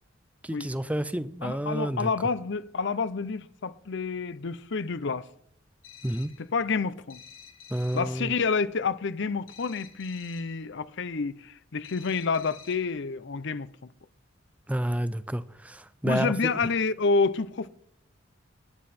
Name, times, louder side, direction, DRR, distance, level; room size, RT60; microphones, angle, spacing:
voice 1, 0.4-2.1 6.0-6.3 7.7-8.3 14.7-16.5, right 1 dB, 5° right, 0.5 m, -30 dB
voice 2, 1.4-5.3 6.4-7.2 7.9-13.9 16.0-17.7, left 4 dB, 60° left, 0.7 m, -29 dB
sound 1, 5.8-6.5 7.1-8.2 9.5-10.6 11.8-13.0, left 7 dB, 90° left, 1.8 m, -50 dB
22.0 x 9.6 x 4.3 m
head